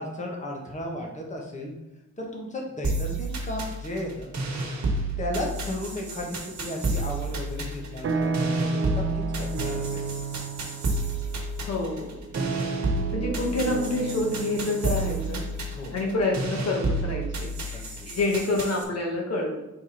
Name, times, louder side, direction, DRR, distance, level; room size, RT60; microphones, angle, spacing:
voice 1, 0.0-1.7 2.2-4.4 5.2-10.0 15.7-15.9 17.6-18.1, left 1 dB, 25° left, 0 dB, 1.2 m, -35 dB
sound 1, 2.8-18.8, right 2 dB, 60° right, 1.4 m, -31 dB
sound 2, 6.7-7.2 7.6-17.6, right 3 dB, 45° right, 0.6 m, -33 dB
voice 2, 11.7-12.2 13.1-15.4 15.9-19.6, left 2 dB, 55° left, 0 dB, 1.2 m, -28 dB
4.9 x 4.5 x 4.4 m, 1.0 s
wide cardioid pair, 125°, 31 cm